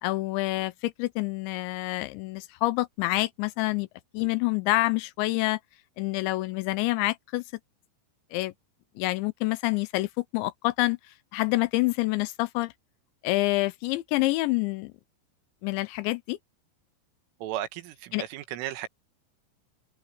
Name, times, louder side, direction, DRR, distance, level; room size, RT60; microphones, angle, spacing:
voice 1, 0.0-3.9 4.1-5.6 6.0-7.4 8.3-8.5 9.0-11.0 11.3-12.7 13.2-14.9 15.6-16.4 18.1-18.2, left 20 dB, 80° left, 2.8 m, -27 dB
voice 2, 17.4-18.9, right 12 dB, 85° right, 4.0 m, -35 dB
omnidirectional pair, 5.6 m